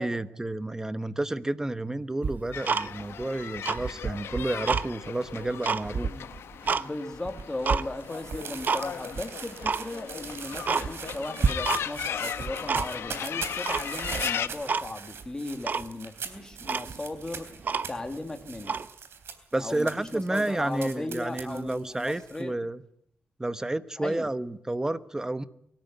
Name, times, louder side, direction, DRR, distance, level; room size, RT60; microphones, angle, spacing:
voice 1, 0.0-6.1 19.5-22.8 23.4-25.4, right 2 dB, 15° right, 1.0 m, -30 dB
Tick-tock, 2.2-3.2 3.6-4.9 5.3-6.9 7.2-7.8 8.3-8.8 9.1-9.2 9.6-9.8 10.2-10.3 10.6-11.2 11.4-12.1 12.3-13.1 13.7-14.2 14.7-14.9 15.2-15.3 15.6-15.9 16.4-16.5 16.6-18.1 18.6-18.9, right 5 dB, 45° right, 0.8 m, -28 dB
sound 1, 2.5-14.5, left 9 dB, 80° left, 1.0 m, -37 dB
voice 2, 6.5-17.6 17.9-18.8 19.6-22.5 24.0-24.3, left 2 dB, 15° left, 2.0 m, -37 dB
sound 2, 7.4-22.4, right 6 dB, 75° right, 3.5 m, -42 dB
23.5 x 13.5 x 9.2 m
cardioid pair, 110°, 4 cm